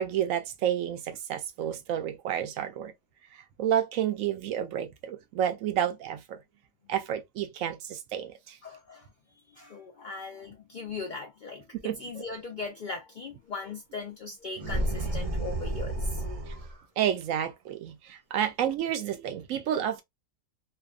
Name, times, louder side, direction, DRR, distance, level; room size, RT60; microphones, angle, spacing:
voice 1, 0.0-2.9 3.6-6.4 6.9-8.6 11.8-12.2 17.0-20.0, right 10 dB, 80° right, 1.0 m, -30 dB
voice 2, 8.6-9.1 9.5-16.2, left 4 dB, 70° left, 0.4 m, -39 dB
sound 1, 14.6-16.8, right 1 dB, 35° right, 0.6 m, -31 dB
2.8 x 2.1 x 2.2 m
omnidirectional pair, 1.4 m